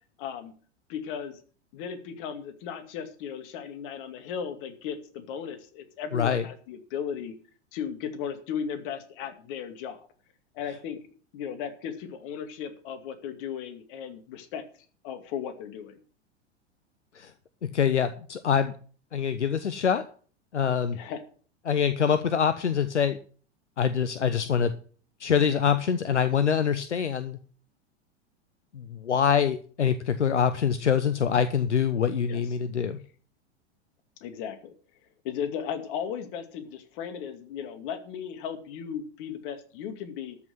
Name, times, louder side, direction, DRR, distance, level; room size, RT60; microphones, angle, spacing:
voice 1, 0.2-0.5 0.9-1.4 1.7-7.3 7.7-10.1 10.5-11.0 11.3-14.6 15.0-16.0 20.9-21.2 32.3-32.4 34.2-34.7 35.2-40.4, left 8 dB, 50° left, 8 dB, 2.4 m, -36 dB
voice 2, 6.1-6.4 17.1-17.3 17.6-18.7 19.1-20.1 20.5-21.0 21.7-23.2 23.8-24.7 25.2-27.4 28.7-33.0, left 7 dB, 80° left, 12 dB, 0.9 m, -25 dB
13.5 x 6.1 x 7.8 m, 0.42 s
figure-of-eight pair, 90°, 35 cm